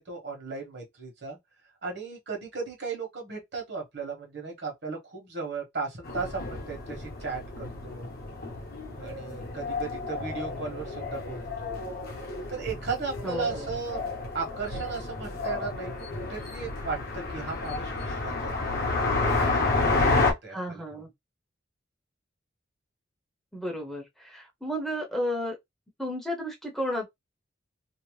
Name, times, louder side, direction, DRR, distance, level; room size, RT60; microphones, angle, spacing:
voice 1, 0.0-1.4 1.8-8.1 9.0-11.8 12.5-14.0 14.3-18.7 19.1-20.8, right 4 dB, 60° right, 1.2 m, -36 dB
sound 1, 6.0-20.3, left 3 dB, 55° left, 0.8 m, -30 dB
voice 2, 13.2-13.7 20.5-21.1 23.5-25.5 26.0-27.1, equal, ahead, 0.6 m, -32 dB
2.7 x 2.1 x 3.1 m
head